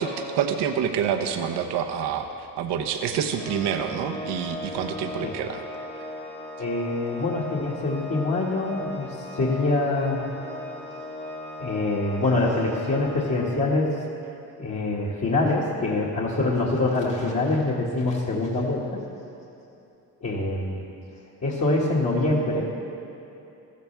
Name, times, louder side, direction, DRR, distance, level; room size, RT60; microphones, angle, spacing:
voice 1, 0.0-5.6, right 7 dB, 85° right, 5 dB, 1.0 m, -27 dB
Organ, 3.3-14.1, left 1 dB, 15° left, 1.6 m, -38 dB
voice 2, 6.6-10.2 11.6-13.9 14.6-18.8 20.2-20.9 21.4-22.7, left 2 dB, 40° left, -6 dB, 2.1 m, -25 dB
16.5 x 13.5 x 3.5 m, 2.9 s
supercardioid pair, 70°, 40 cm